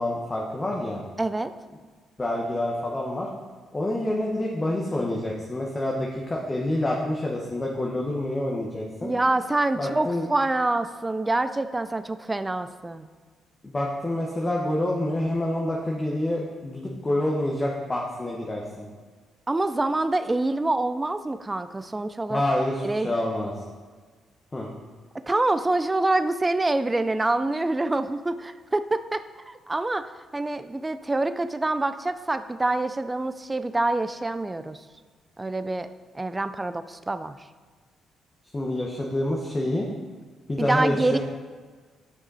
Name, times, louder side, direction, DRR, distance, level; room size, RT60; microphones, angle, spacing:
voice 1, 0.0-1.0 2.2-3.3 3.7-9.1 9.8-10.3 13.6-18.9 22.3-23.5 24.5-24.7 38.5-39.9 40.5-41.2, left 1 dB, 20° left, -2 dB, 1.1 m, -27 dB
voice 2, 1.2-1.5 9.0-13.1 19.5-22.4 22.8-23.2 25.3-34.8 35.4-35.9 36.1-37.3 40.6-41.2, right 2 dB, 15° right, 11 dB, 0.4 m, -26 dB
10.0 x 6.0 x 4.1 m, 1.5 s
cardioid pair, 90°, 0 cm